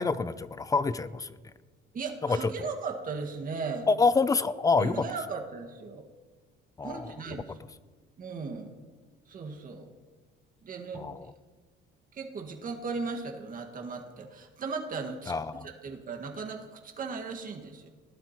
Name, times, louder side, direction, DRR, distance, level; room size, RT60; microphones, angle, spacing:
voice 1, 0.0-1.3 2.2-2.7 3.9-5.1 6.8-7.1 10.9-11.3 15.3-15.7, left 4 dB, 15° left, 16 dB, 0.4 m, -27 dB
voice 2, 1.9-3.9 4.8-6.0 6.8-7.6 8.2-8.8 9.3-9.9 10.6-11.0 12.1-15.3 15.6-17.9, right 4 dB, 40° right, 3 dB, 1.7 m, -37 dB
18.5 x 11.5 x 3.0 m, 1.4 s
cardioid pair, 130°, 21 cm